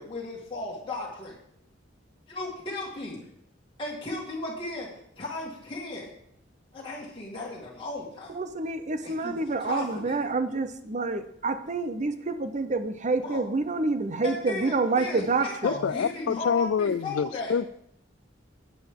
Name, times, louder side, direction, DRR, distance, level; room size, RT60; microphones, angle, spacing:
voice 1, 0.0-1.4 2.3-3.3 3.8-4.9 5.2-6.1 6.7-8.4 9.0-10.2 13.2-13.4 14.2-17.6, left 2 dB, 25° left, 1.9 m, -36 dB
voice 2, 8.3-15.7, right 3 dB, 40° right, 0.7 m, -28 dB
voice 3, 15.6-17.7, left 6 dB, 75° left, 0.4 m, -26 dB
10.5 x 8.6 x 3.7 m
head